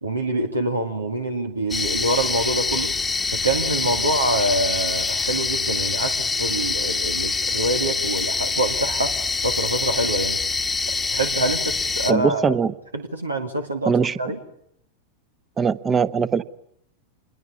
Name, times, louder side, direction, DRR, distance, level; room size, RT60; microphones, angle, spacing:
voice 1, 0.0-2.9 3.3-9.2 9.4-10.4 11.1-12.6 12.9-13.9 14.2-14.4, right 1 dB, 80° right, 6 dB, 2.3 m, -25 dB
sound 1, 1.7-12.1, left 4 dB, 10° left, 1.4 m, -25 dB
voice 2, 12.1-12.7 13.8-14.2 15.6-16.4, right 6 dB, 20° right, 16 dB, 1.1 m, -21 dB
27.0 x 22.0 x 9.9 m, 0.73 s
figure-of-eight pair, 90°, 0 cm